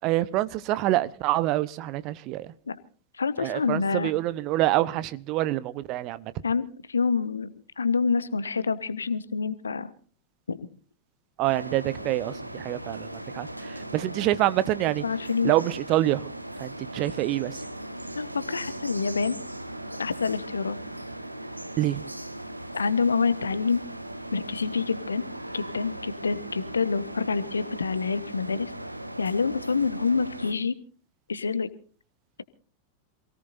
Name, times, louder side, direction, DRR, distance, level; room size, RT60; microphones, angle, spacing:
voice 1, 0.0-2.5 3.4-6.3 11.4-15.0 15.4-16.3 16.6-17.6 21.8-22.0, right 15 dB, 40° right, 1.0 m, -26 dB
voice 2, 3.1-4.1 6.4-9.9 10.5-10.6 15.0-15.5 18.2-19.4 20.0-20.8 22.7-23.8 24.3-25.2 25.5-28.7 29.2-30.8 31.3-31.7, left 5 dB, 75° left, 1.2 m, -27 dB
sound 1, 11.4-30.5, right 1 dB, 85° right, 1.1 m, -38 dB
27.5 x 17.5 x 2.7 m
figure-of-eight pair, 90°, 0 cm